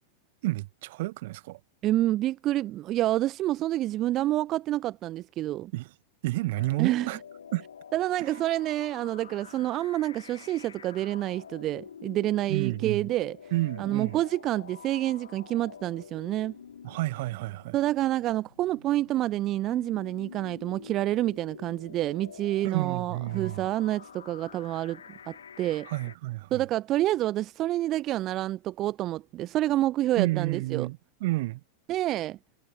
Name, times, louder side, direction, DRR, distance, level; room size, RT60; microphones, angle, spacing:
voice 1, 0.4-1.6 5.7-5.9 6.2-7.2 7.5-7.6 12.5-13.0 13.5-14.2 16.8-17.8 22.6-23.7 25.9-26.6 30.2-31.6, right 19 dB, 50° right, 1.2 m, -30 dB
voice 2, 1.8-5.7 6.8-7.1 7.9-13.4 13.8-16.5 17.7-25.9 26.5-30.9 31.9-32.4, right 14 dB, 35° right, 0.7 m, -28 dB
sound 1, 6.5-26.2, left 7 dB, 70° left, 2.0 m, -48 dB
figure-of-eight pair, 90°, 0 cm